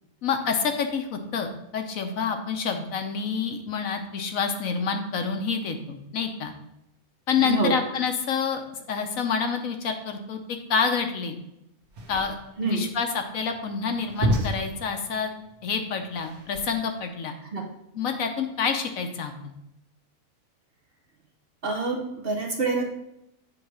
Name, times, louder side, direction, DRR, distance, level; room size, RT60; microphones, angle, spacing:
voice 1, 0.2-6.5 7.3-8.6 8.9-10.4 10.7-11.4 12.1-15.3 15.6-17.3 17.9-19.5, left 6 dB, 70° left, 5 dB, 1.1 m, -28 dB
voice 2, 7.4-7.7 12.6-12.8 17.5-17.6 21.6-22.9, right 4 dB, 45° right, 1 dB, 1.1 m, -26 dB
sound 1, 11.8-17.0, right 1 dB, 75° right, 1.8 m, -32 dB
7.9 x 3.2 x 6.1 m, 0.84 s
omnidirectional pair, 1.6 m